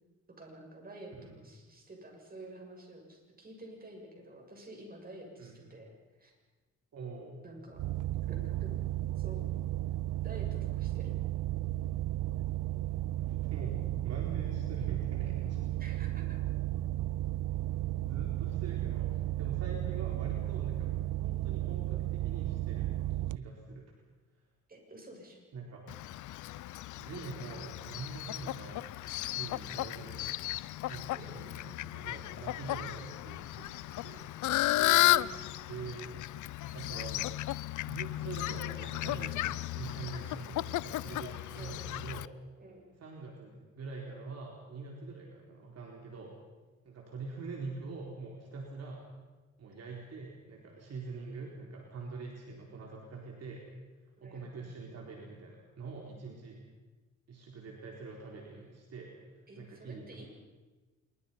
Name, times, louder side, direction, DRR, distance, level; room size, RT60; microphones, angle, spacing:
voice 1, 0.4-6.3 7.4-7.8 8.2-8.7 9.2-9.4 10.2-11.2 15.8-16.4 19.7-19.9 24.7-25.4 31.1-31.8 34.7-35.3 41.5-42.0 42.6-42.8 54.2-54.8 59.5-60.3, right 1 dB, 30° right, 1 dB, 7.5 m, -49 dB
voice 2, 6.9-7.4 13.2-15.7 18.0-20.9 21.2-23.8 24.3-24.4 25.5-25.9 27.0-28.9 29.2-30.4 30.9-34.3 35.7-36.2 36.7-42.3 43.0-46.4 46.8-49.0 49.6-53.6 54.2-56.6 57.3-60.3, right 4 dB, 55° right, 0 dB, 4.1 m, -44 dB
sound 1, 7.8-23.4, right 15 dB, 80° right, 0.6 m, -34 dB
Fowl, 25.9-42.3, left 16 dB, 75° left, 0.6 m, -34 dB
26.5 x 23.0 x 5.7 m, 1.2 s
cardioid pair, 90°, 30 cm